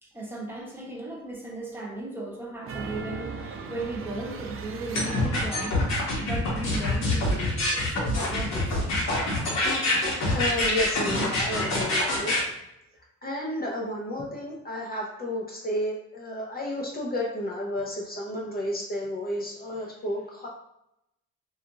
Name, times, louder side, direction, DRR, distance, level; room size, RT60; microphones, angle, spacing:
voice 1, 0.0-5.9 6.2-8.9, right 2 dB, 5° right, -3 dB, 0.8 m, -37 dB
sound 1, 2.6-5.8, right 4 dB, 45° right, 0.4 m, -38 dB
sound 2, 4.9-12.4, left 1 dB, 60° left, 1.0 m, -25 dB
voice 2, 9.9-12.4 13.2-20.5, left 1 dB, 30° left, -3 dB, 0.5 m, -32 dB
2.5 x 2.4 x 2.9 m, 0.82 s
cardioid pair, 90°, 30 cm